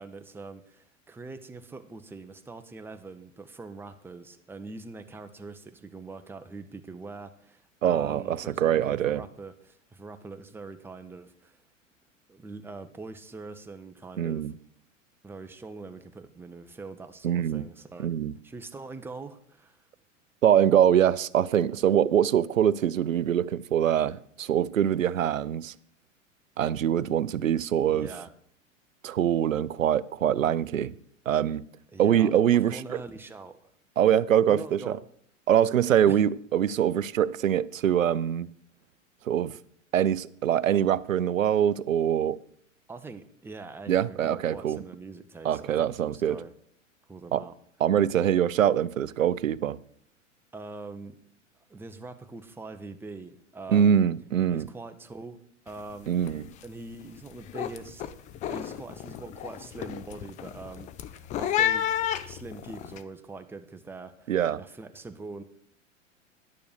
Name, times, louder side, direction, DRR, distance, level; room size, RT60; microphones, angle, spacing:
voice 1, 0.0-11.6 12.3-14.5 15.2-18.1 18.4-19.8 27.9-28.3 31.9-32.3 32.7-33.6 34.5-35.0 36.1-36.2 42.9-46.5 47.1-47.5 50.5-51.1 51.7-54.0 54.5-55.4 55.7-56.1 56.6-58.0 58.5-62.0 62.3-65.4, right 3 dB, 5° right, 0.8 m, -43 dB
voice 2, 7.8-9.2 14.2-14.5 17.2-17.6 18.0-18.3 20.4-25.7 26.6-28.1 29.0-30.9 31.3-31.6 32.0-33.0 34.0-35.0 35.5-38.5 39.2-39.6 39.9-42.4 43.9-44.8 45.4-46.4 47.3-47.4 47.8-49.8 53.7-54.7 56.1-56.5 64.3-64.6, right 9 dB, 85° right, 0.5 m, -24 dB
sound 1, 55.7-55.9 56.2-56.6 57.0-63.0, left 10 dB, 20° left, 0.4 m, -32 dB
10.5 x 6.9 x 6.6 m
figure-of-eight pair, 95°, 39 cm